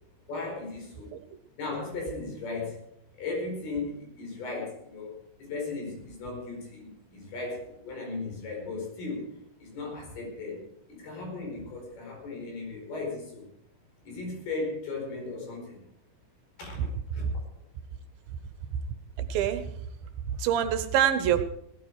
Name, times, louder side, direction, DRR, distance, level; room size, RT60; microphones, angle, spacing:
voice 1, 0.3-1.1 1.6-2.8 3.1-9.3 9.6-13.5 14.0-15.8 16.6-16.9 17.1-17.3, left 3 dB, 75° left, 0 dB, 6.7 m, -36 dB
voice 2, 19.2-19.7 20.4-21.4, right 10 dB, 75° right, 10 dB, 2.6 m, -25 dB
17.0 x 13.0 x 4.8 m, 0.76 s
omnidirectional pair, 4.5 m